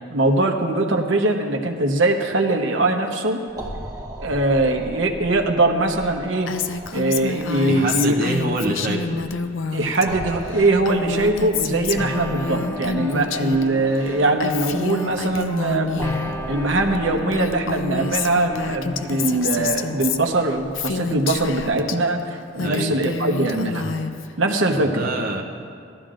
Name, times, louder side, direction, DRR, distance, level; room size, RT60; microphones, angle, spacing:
voice 1, 0.0-3.4 4.2-6.5 6.9-8.1 9.7-15.9 16.5-23.9 24.4-25.1, right 2 dB, 80° right, 3 dB, 1.0 m, -21 dB
sound 1, 3.5-21.7, right 1 dB, 20° right, 0.9 m, -39 dB
Female speech woman speaking, 6.5-10.1 10.3-13.6 13.9-16.3 17.0-17.1 17.3-22.0 22.4-24.3, left 4 dB, 85° left, 0.5 m, -28 dB
voice 2, 7.6-9.3 22.6-22.9 24.7-25.4, right 2 dB, 50° right, 0 dB, 0.7 m, -26 dB
sound 2, 12.0-20.0, equal, 15° left, 0.6 m, -35 dB
17.5 x 13.0 x 2.5 m, 2.3 s
head